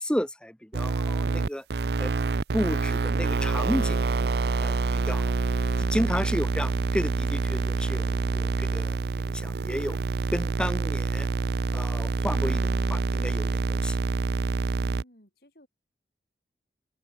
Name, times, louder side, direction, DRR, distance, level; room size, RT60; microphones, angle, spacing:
voice 1, 0.0-1.6 2.0-2.1 2.5-4.2 4.6-5.3 5.8-9.0 9.2-10.0 10.3-11.3 11.7-14.0, equal, 5° left, 0.8 m, -32 dB
sound 1, 0.7-15.0, right 4 dB, 65° right, 0.5 m, -26 dB
voice 2, 14.8-15.7, equal, 60° left, 6.9 m, -56 dB
head